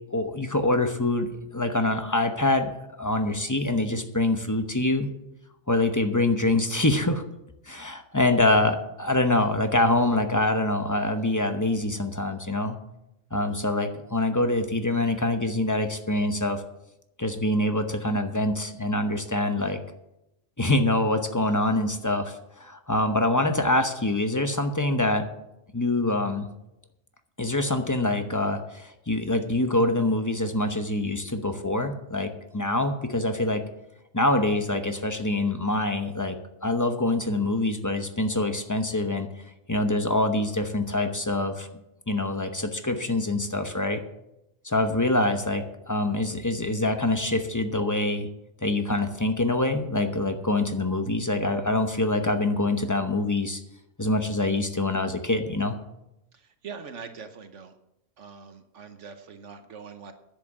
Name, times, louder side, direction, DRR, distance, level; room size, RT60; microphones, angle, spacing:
voice 1, 0.1-2.7 3.0-5.1 5.7-7.2 7.7-12.8 13.3-16.6 17.2-19.8 20.6-25.3 25.7-26.5 27.4-33.6 34.1-39.3 39.7-41.7 42.1-44.0 44.6-48.3 48.6-53.6 54.0-55.8, left 2 dB, 15° left, 6 dB, 0.8 m, -25 dB
voice 2, 56.3-57.7 58.2-60.1, right 6 dB, 70° right, 8 dB, 1.3 m, -43 dB
10.5 x 7.7 x 7.3 m, 0.88 s
omnidirectional pair, 1.3 m